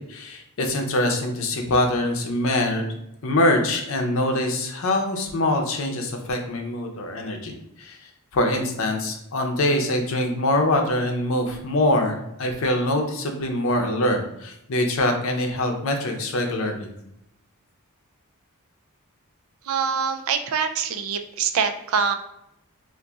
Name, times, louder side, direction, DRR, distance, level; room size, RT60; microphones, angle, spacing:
voice 1, 0.1-2.9 3.2-7.5 7.8-8.0 8.3-16.9, left 1 dB, 65° left, 3 dB, 0.5 m, -24 dB
voice 2, 19.6-22.1, right 6 dB, 70° right, 8 dB, 0.3 m, -24 dB
2.5 x 2.3 x 3.8 m, 0.79 s
head